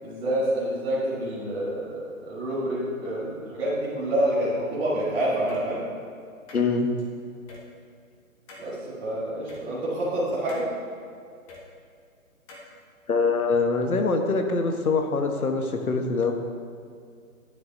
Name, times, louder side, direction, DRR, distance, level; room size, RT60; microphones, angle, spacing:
voice 1, 0.0-5.8 8.6-10.6, right 1 dB, 10° right, -12 dB, 1.6 m, -27 dB
sound 1, 5.5-5.6 6.5-7.0 7.5-7.6 8.5-8.7 9.5-9.6 10.5-10.7 11.5-11.6 12.5-12.7, left 2 dB, 25° left, 1.2 m, -45 dB
voice 2, 6.5-6.9 13.1-16.3, left 4 dB, 75° left, 4 dB, 1.4 m, -24 dB
12.0 x 9.7 x 2.8 m, 2.3 s
figure-of-eight pair, 145°, 44 cm